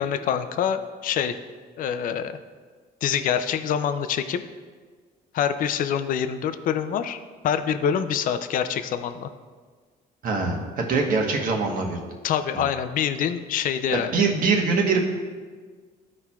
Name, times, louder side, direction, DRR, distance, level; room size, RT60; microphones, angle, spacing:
voice 1, 0.0-1.4 1.8-2.4 3.0-4.4 5.3-7.2 7.4-9.3 12.2-14.2, left 8 dB, 55° left, 10 dB, 0.4 m, -25 dB
voice 2, 10.2-12.0 12.5-12.7 13.9-15.0, right 4 dB, 55° right, 1 dB, 1.2 m, -23 dB
12.0 x 4.3 x 2.4 m, 1.5 s
cardioid pair, 110°, 17 cm